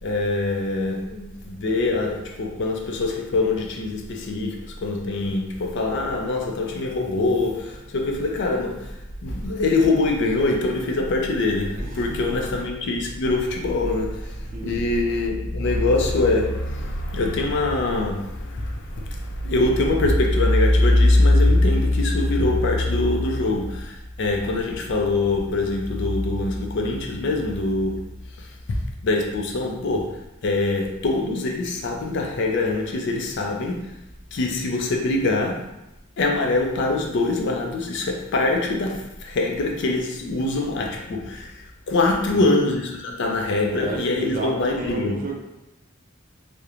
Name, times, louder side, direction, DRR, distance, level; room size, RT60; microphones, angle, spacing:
voice 1, 0.0-28.0 28.4-28.8 29.0-33.9 34.3-35.7 36.2-45.2, left 2 dB, 60° left, 1 dB, 0.4 m, -23 dB
voice 2, 11.7-12.4 14.5-14.8 42.1-42.4 43.7-45.3, right 3 dB, 40° right, 0 dB, 0.4 m, -33 dB
3.0 x 2.1 x 2.4 m, 0.91 s
head